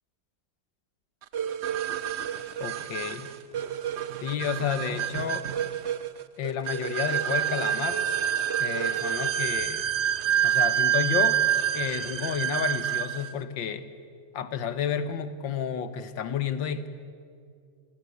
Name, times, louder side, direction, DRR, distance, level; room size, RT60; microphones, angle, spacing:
sound 1, 1.3-13.3, right 10 dB, 60° right, 0.7 m, -27 dB
voice 1, 2.6-3.3 4.2-5.5 6.4-8.0 8.6-9.9 10.4-11.4 11.7-13.9 14.3-16.9, left 8 dB, 80° left, 11 dB, 1.9 m, -31 dB
26.5 x 18.5 x 8.1 m, 2.3 s
omnidirectional pair, 2.0 m